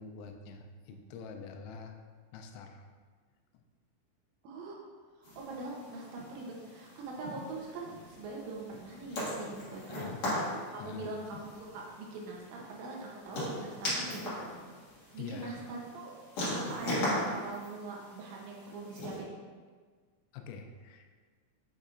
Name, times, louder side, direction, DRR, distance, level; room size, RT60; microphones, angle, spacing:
voice 1, 0.0-2.0 2.3-2.8 3.5-3.6 9.9-10.2 10.8-11.1 15.2-15.5 20.3-21.2, left 5 dB, 85° left, 4 dB, 3.3 m, -45 dB
voice 2, 4.4-4.8 5.2-10.1 10.7-14.5 15.1-16.1 16.5-19.3, right 3 dB, 80° right, -2 dB, 3.2 m, -42 dB
sound 1, 5.2-19.2, left 1 dB, 65° left, 1.7 m, -39 dB
7.7 x 5.3 x 2.5 m, 1.6 s
omnidirectional pair, 5.9 m